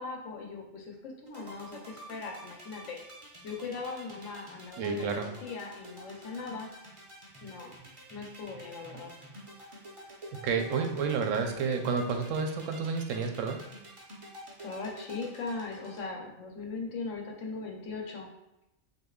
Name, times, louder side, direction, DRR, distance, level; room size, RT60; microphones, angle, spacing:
voice 1, 0.0-3.0 3.4-6.7 7.4-7.8 8.1-9.1 14.6-18.3, left 4 dB, 75° left, 1 dB, 1.1 m, -39 dB
sound 1, 1.3-16.0, right 1 dB, 30° right, 0.7 m, -48 dB
voice 2, 4.8-5.3 10.4-13.6, right 5 dB, 85° right, 5 dB, 0.9 m, -30 dB
6.3 x 2.7 x 2.3 m, 0.89 s
omnidirectional pair, 1.3 m